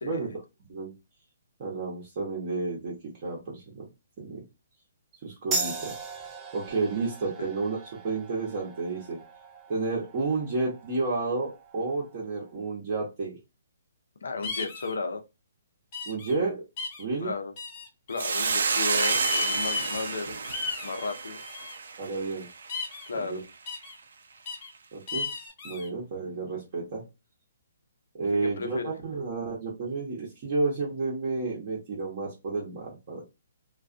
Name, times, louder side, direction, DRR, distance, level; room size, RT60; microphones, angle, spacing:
voice 1, 0.0-0.3 7.4-7.5 14.2-15.2 17.2-17.5 18.1-20.4 20.8-21.4 23.1-23.4 28.4-28.9, left 4 dB, 85° left, 0.6 m, -34 dB
voice 2, 1.6-3.0 3.2-3.9 4.2-4.4 5.2-6.0 6.5-7.8 8.0-9.2 9.7-13.4 16.0-16.6 17.0-17.3 22.0-22.5 23.1-23.4 24.9-25.3 25.6-27.0 28.2-33.2, right 3 dB, 35° right, 0.8 m, -31 dB
sound 1, 5.5-12.6, right 3 dB, 10° right, 0.4 m, -38 dB
sound 2, 14.4-14.9 15.9-16.3 16.8-17.0 17.6-18.3 18.9-20.1 20.4-21.8 22.7-23.1 23.7-23.9 24.5-24.7 25.1-25.9, left 4 dB, 25° left, 0.6 m, -34 dB
Hiss, 18.2-22.7, right 4 dB, 70° right, 0.5 m, -30 dB
2.3 x 2.3 x 2.5 m
hypercardioid pair, 170°, 0 cm